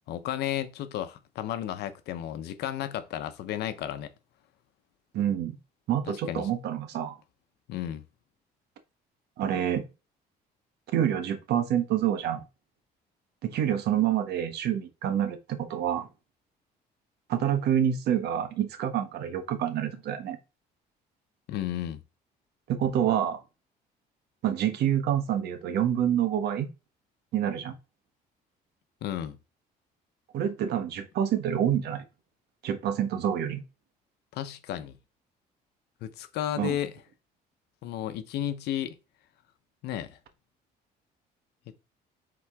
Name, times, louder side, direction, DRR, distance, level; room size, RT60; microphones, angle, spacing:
voice 1, 0.1-4.1 6.1-6.5 7.7-8.0 21.5-22.0 29.0-29.4 34.3-35.0 36.0-36.9 37.8-39.0 39.8-40.2 41.7-41.8, left 11 dB, 80° left, 0.9 m, -33 dB
voice 2, 5.1-5.6 5.9-7.2 9.4-9.9 10.9-12.4 13.4-16.1 17.3-20.4 22.7-23.4 24.4-26.7 27.3-27.8 30.3-32.0 32.6-33.6 36.6-36.8, right 10 dB, 75° right, 1.3 m, -27 dB
7.6 x 3.9 x 3.6 m
cardioid pair, 110°, 17 cm